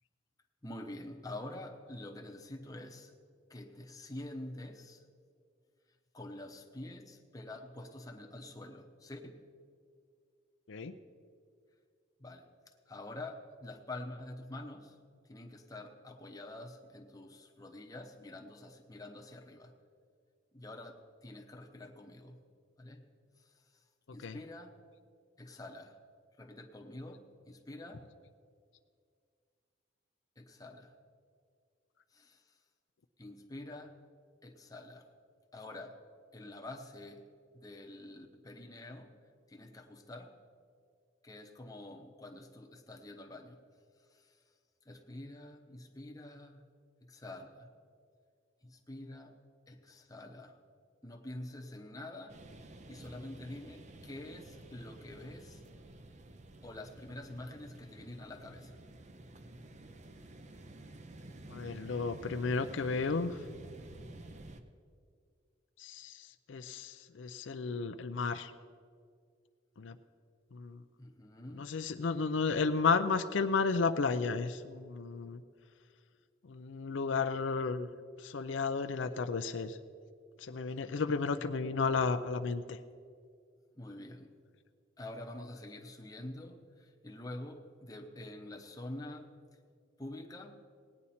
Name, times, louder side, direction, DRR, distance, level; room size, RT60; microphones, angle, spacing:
voice 1, 0.6-3.1 3.5-5.0 6.1-9.5 12.2-19.8 20.5-22.4 22.8-23.1 23.4-23.8 24.1-24.8 25.4-26.0 26.4-28.1 30.4-31.0 32.1-32.6 33.2-34.0 34.4-35.1 35.5-36.0 36.3-37.3 37.5-39.2 39.5-40.4 41.2-43.6 44.0-44.4 44.8-47.7 48.6-50.6 51.0-52.4 52.9-55.6 56.6-58.8 71.0-71.7 81.1-81.4 83.8-84.3 85.0-89.4 90.0-90.6, left 1 dB, 20° left, 2 dB, 0.8 m, -47 dB
sound 1, 52.3-64.6, right 2 dB, 40° right, 0.6 m, -51 dB
voice 2, 61.5-63.4 65.8-68.5 69.8-70.0 70.5-70.8 71.5-75.4 76.4-77.9 78.2-79.8 80.4-82.8, left 4 dB, 80° left, 8 dB, 0.5 m, -33 dB
18.0 x 9.7 x 4.3 m, 2.2 s
head